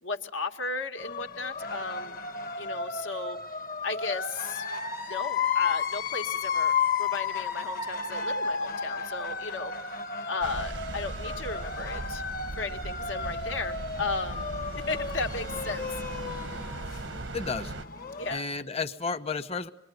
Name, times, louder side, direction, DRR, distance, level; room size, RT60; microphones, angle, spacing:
voice 1, 0.0-2.2 2.6-3.4 3.8-4.7 5.1-10.0 10.3-12.2 12.5-14.5 14.7-16.0 18.2-18.4, left 3 dB, 85° left, 5 dB, 2.0 m, -35 dB
sound 1, 1.0-18.4, left 5 dB, 50° left, 1.4 m, -33 dB
sound 2, 10.4-17.8, right 2 dB, 90° right, 1.2 m, -38 dB
voice 2, 17.3-17.7 18.3-19.7, left 4 dB, 35° left, 9 dB, 1.1 m, -32 dB
26.5 x 23.5 x 9.6 m, 0.78 s
head